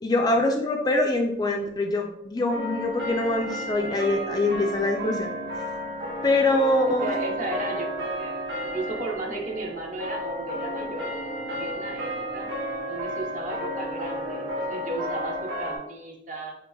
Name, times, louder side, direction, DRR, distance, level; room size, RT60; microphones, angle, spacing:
voice 1, 0.0-5.3 6.2-7.1, left 2 dB, 20° left, 3 dB, 0.3 m, -24 dB
sound 1, 0.9-1.9 2.5-15.8, equal, 85° right, 1.1 m, -32 dB
voice 2, 6.8-7.9 8.2-8.3 8.6-11.1 11.5-12.5 12.9-16.6, right 2 dB, 45° right, 0 dB, 0.7 m, -34 dB
4.5 x 2.5 x 2.7 m, 0.76 s
head